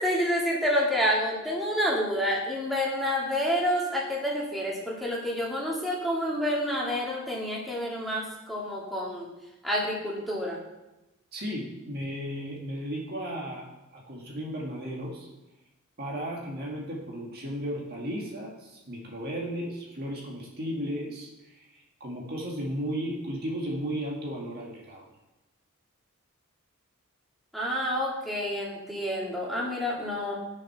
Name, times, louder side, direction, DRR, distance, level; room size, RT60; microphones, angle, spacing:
voice 1, 0.0-9.3 9.6-10.6 27.5-30.4, equal, ahead, -5 dB, 2.4 m, -28 dB
voice 2, 11.3-15.3 16.0-25.1, equal, 45° right, -2 dB, 1.8 m, -35 dB
9.8 x 6.5 x 5.9 m, 0.99 s
head